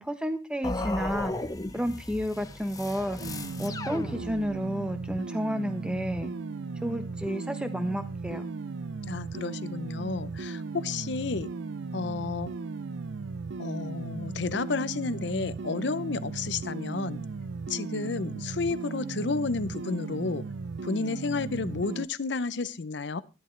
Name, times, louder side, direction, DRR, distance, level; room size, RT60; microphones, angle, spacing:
voice 1, 0.0-1.3 1.7-3.2 3.6-6.3 6.8-8.4, equal, 5° right, 8 dB, 1.0 m, -31 dB
sound 1, 0.6-4.7, left 2 dB, 20° left, 0.7 m, -36 dB
sound 2, 3.2-22.1, right 4 dB, 70° right, 0.5 m, -36 dB
voice 2, 9.1-11.5 11.9-12.5 13.6-17.2 17.7-20.4 20.8-23.2, left 4 dB, 65° left, 16 dB, 0.6 m, -31 dB
13.0 x 11.5 x 3.2 m, 0.31 s
head